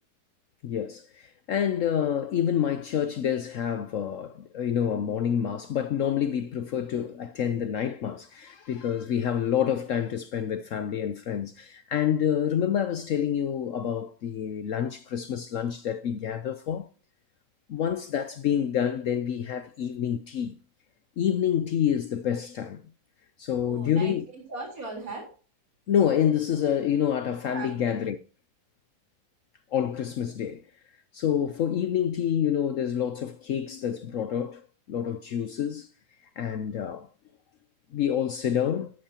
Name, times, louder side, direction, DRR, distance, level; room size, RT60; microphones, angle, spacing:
voice 1, 0.6-16.9 17.7-20.5 21.2-22.8 23.4-24.3 25.9-28.2 29.7-30.6 31.1-34.6 34.9-35.9 36.4-37.1 37.9-38.9, left 9 dB, 65° left, 0.9 m, -27 dB
voice 2, 23.6-25.4 27.5-27.9, right 3 dB, 55° right, 4.2 m, -38 dB
12.5 x 10.0 x 2.8 m
omnidirectional pair, 1.8 m